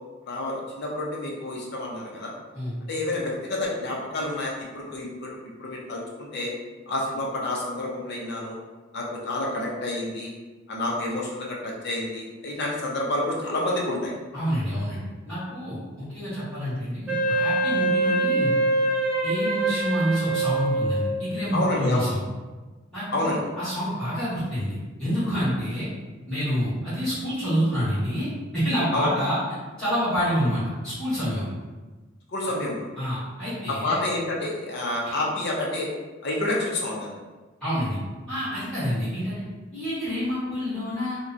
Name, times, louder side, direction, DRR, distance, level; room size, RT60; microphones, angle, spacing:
voice 1, 0.3-2.3 2.9-6.5 6.9-8.6 8.9-10.3 10.7-14.1 21.5-22.1 23.1-23.4 28.9-29.1 32.3-32.9 33.7-35.9 36.2-37.1, left 2 dB, 60° left, -2 dB, 0.6 m, -29 dB
voice 2, 14.3-18.5 19.2-22.2 22.9-23.3 23.6-25.9 26.3-29.4 29.8-31.5 33.0-34.0 35.0-35.1 37.6-38.0 38.3-39.4 39.7-41.2, equal, 5° left, -16 dB, 1.3 m, -27 dB
Wind instrument woodwind instrument, 17.1-21.3, right 2 dB, 10° right, 0.9 m, -24 dB
2.8 x 2.2 x 2.4 m, 1.3 s
head